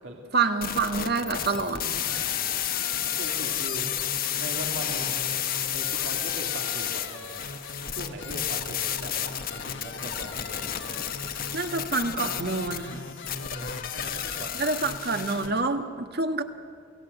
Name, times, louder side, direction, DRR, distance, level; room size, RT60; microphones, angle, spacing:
voice 1, 0.3-2.1 11.5-13.1 14.6-16.4, right 4 dB, 55° right, 6 dB, 1.7 m, -27 dB
sound 1, 0.6-15.5, left 10 dB, 50° left, 1.2 m, -31 dB
sound 2, 2.0-15.6, left 4 dB, 65° left, 1.7 m, -42 dB
voice 2, 2.1-3.9 4.4-5.2 5.7-7.5 7.9-10.7 13.3-14.7, right 1 dB, 75° right, 1 dB, 2.8 m, -40 dB
28.5 x 17.5 x 8.1 m, 2.4 s
head